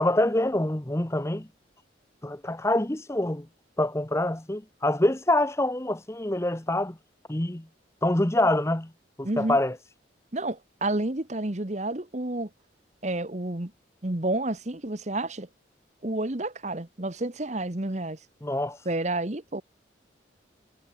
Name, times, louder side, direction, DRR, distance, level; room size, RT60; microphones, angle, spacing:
voice 1, 0.0-1.5 2.2-3.5 3.8-7.0 7.3-7.7 8.0-8.9 9.2-9.8 18.4-18.8, left 1 dB, 15° left, 0.9 m, -25 dB
voice 2, 9.2-9.6 10.3-12.5 13.0-13.7 14.0-15.5 16.0-18.2 18.8-19.6, right 2 dB, 35° right, 1.3 m, -30 dB
head